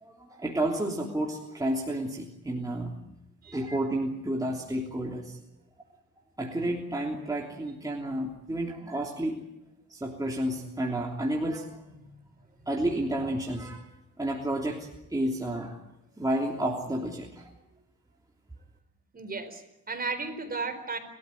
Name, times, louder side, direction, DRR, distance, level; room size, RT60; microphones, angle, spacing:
voice 1, 0.0-2.9 3.5-5.4 6.4-9.4 9.9-11.7 12.7-13.9 14.2-15.8 16.2-17.5, right 1 dB, 10° right, -1 dB, 3.2 m, -31 dB
voice 2, 19.1-21.0, right 4 dB, 30° right, 8 dB, 4.3 m, -35 dB
30.0 x 13.5 x 9.8 m, 0.90 s
cardioid pair, 90°, 30 cm